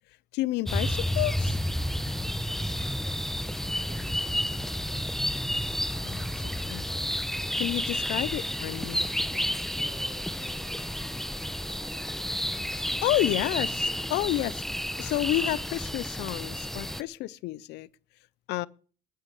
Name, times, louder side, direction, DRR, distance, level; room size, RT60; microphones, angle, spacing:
voice 1, 0.3-1.6 6.0-6.8 7.6-9.0 12.7-17.9 18.5-18.7, left 17 dB, 85° left, 0.6 m, -30 dB
sound 1, 0.7-17.0, equal, ahead, 0.8 m, -31 dB
voice 2, 2.7-4.8 7.9-8.1 9.0-12.2, right 4 dB, 25° right, 2.4 m, -53 dB
12.0 x 11.5 x 8.3 m
cardioid pair, 110°, 17 cm